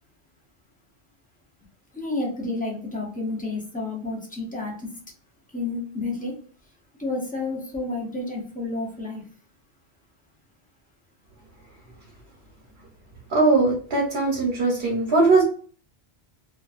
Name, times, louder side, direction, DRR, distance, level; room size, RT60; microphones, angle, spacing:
voice 1, 1.9-4.9 5.5-6.4 7.0-9.2, left 2 dB, 10° left, -2 dB, 0.5 m, -30 dB
voice 2, 13.3-15.4, right 3 dB, 65° right, -2 dB, 0.9 m, -20 dB
2.5 x 2.1 x 2.3 m, 0.43 s
omnidirectional pair, 1.1 m